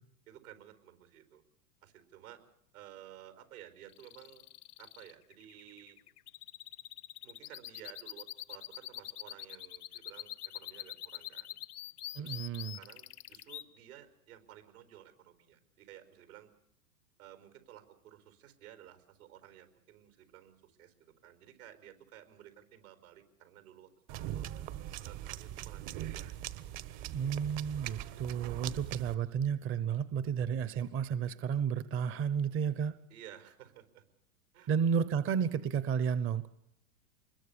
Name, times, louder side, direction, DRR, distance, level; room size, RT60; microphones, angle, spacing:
voice 1, 0.3-1.4 1.8-2.4 2.7-4.4 4.8-6.0 7.2-11.6 12.2-12.4 12.7-16.5 17.2-24.5 25.0-26.4 26.6-26.7 33.1-34.0 34.5-34.7, right 11 dB, 75° right, 9 dB, 5.0 m, -54 dB
sound 1, 3.9-13.6, left 13 dB, 85° left, 0.9 m, -45 dB
voice 2, 12.2-12.8 27.1-32.9 34.7-36.5, right 7 dB, 30° right, 14 dB, 1.0 m, -32 dB
sound 2, 24.1-29.1, right 13 dB, 45° right, 1.5 m, -41 dB
25.5 x 21.5 x 7.0 m, 0.75 s
hypercardioid pair, 115°, 44 cm